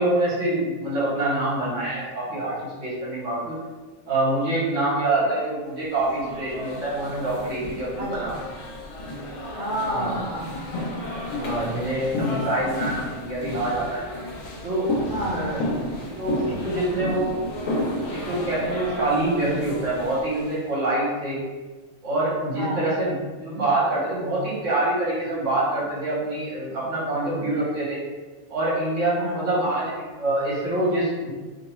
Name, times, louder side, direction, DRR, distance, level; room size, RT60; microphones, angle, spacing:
voice 1, 0.0-3.6 4.1-8.3 9.9-10.2 11.3-14.0 14.6-14.9 15.3-15.6 15.9-17.3 18.1-21.4 22.0-23.1 23.4-28.0 28.5-31.3, right 2 dB, 65° right, -6 dB, 1.2 m, -25 dB
sound 1, 5.9-20.6, left 1 dB, 75° left, 1.0 m, -32 dB
voice 2, 8.0-8.3 9.6-10.9 15.1-15.7 22.5-22.9 29.1-29.6, equal, 50° right, -6 dB, 0.7 m, -31 dB
2.7 x 2.2 x 3.0 m, 1.3 s
omnidirectional pair, 1.4 m